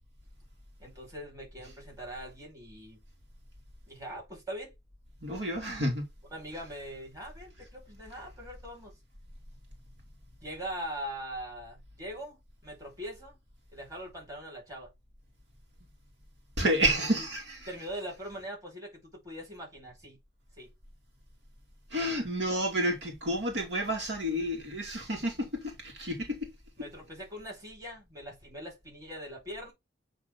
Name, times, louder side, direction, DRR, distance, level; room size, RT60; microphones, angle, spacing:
voice 1, 0.8-3.0 3.9-4.7 6.3-9.0 10.4-13.4 13.7-14.9 17.1-17.2 17.7-19.0 19.2-20.2 20.6-20.7 26.8-29.7, equal, 20° right, 5.4 m, -42 dB
voice 2, 5.2-6.0 16.6-17.7 21.9-26.5, right 1 dB, 75° right, 2.5 m, -30 dB
8.6 x 3.6 x 3.9 m
head